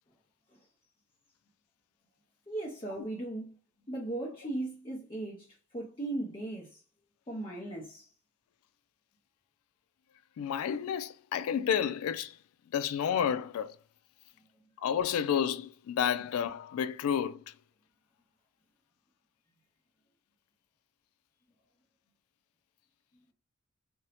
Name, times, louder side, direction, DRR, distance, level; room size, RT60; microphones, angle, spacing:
voice 1, 2.5-3.5 3.9-5.5 5.7-6.7 7.3-8.1, right 2 dB, 25° left, 0.6 m, -37 dB
voice 2, 10.4-12.4 12.7-13.8 14.8-17.4, left 8 dB, 80° left, 0.3 m, -30 dB
2.7 x 2.1 x 4.0 m
head